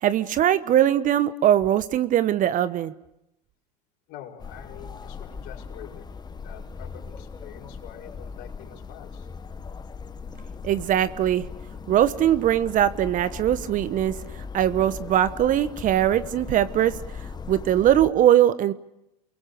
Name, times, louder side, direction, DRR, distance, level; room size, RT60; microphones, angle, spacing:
voice 1, 0.0-2.9 10.6-11.4 11.9-14.1 14.5-16.9 17.5-18.7, right 11 dB, 40° right, 14 dB, 1.1 m, -21 dB
voice 2, 4.1-9.3, left 10 dB, 55° left, -2 dB, 5.2 m, -46 dB
sound 1, 4.4-18.1, left 5 dB, 20° left, 1.4 m, -39 dB
29.5 x 22.5 x 6.8 m, 0.86 s
hypercardioid pair, 85°, 21 cm